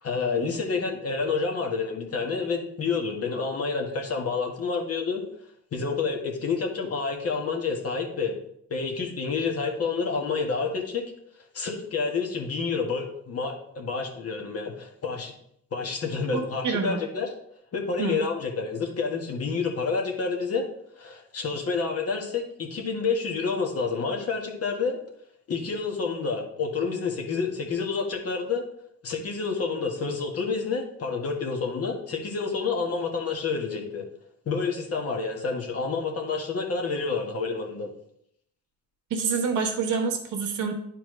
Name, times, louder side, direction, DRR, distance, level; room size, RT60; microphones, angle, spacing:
voice 1, 0.0-5.2 5.7-8.4 8.7-11.0 11.5-15.3 15.7-17.3 17.7-20.7 20.9-25.0 25.5-28.6 29.0-34.0 34.4-37.9, left 4 dB, 50° left, 2 dB, 1.6 m, -29 dB
voice 2, 16.3-17.0 18.0-18.2 39.1-40.7, right 5 dB, 75° right, 2 dB, 1.3 m, -27 dB
10.5 x 4.4 x 3.2 m, 0.71 s
cardioid pair, 90°, 30 cm